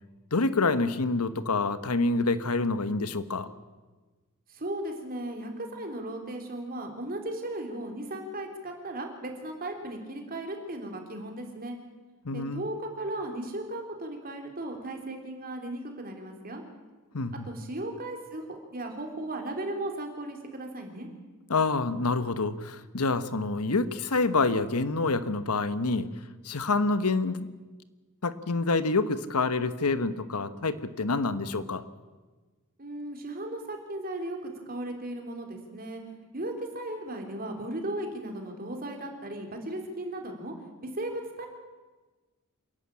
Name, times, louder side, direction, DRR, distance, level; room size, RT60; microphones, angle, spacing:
voice 1, 0.3-3.5 12.2-12.7 17.1-17.5 21.5-26.1 26.4-27.5 28.2-31.8, left 3 dB, 85° left, 13 dB, 1.1 m, -27 dB
voice 2, 4.5-11.8 12.3-16.6 17.3-21.1 32.8-36.0 36.3-40.5 40.8-41.5, right 1 dB, 40° right, 3 dB, 3.5 m, -36 dB
27.5 x 11.5 x 8.9 m, 1.3 s
head